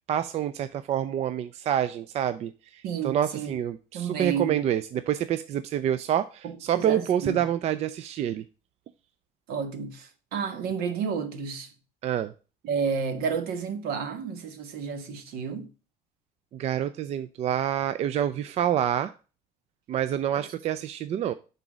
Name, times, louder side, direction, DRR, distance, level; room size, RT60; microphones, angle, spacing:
voice 1, 0.1-8.4 12.0-12.3 16.5-19.1 19.9-21.3, right 10 dB, 40° right, 0.4 m, -27 dB
voice 2, 2.8-3.6 3.9-4.6 6.4-7.4 9.5-11.7 12.6-15.7, right 6 dB, 70° right, 1.3 m, -31 dB
5.9 x 4.0 x 6.0 m
cardioid pair, 140°, 16 cm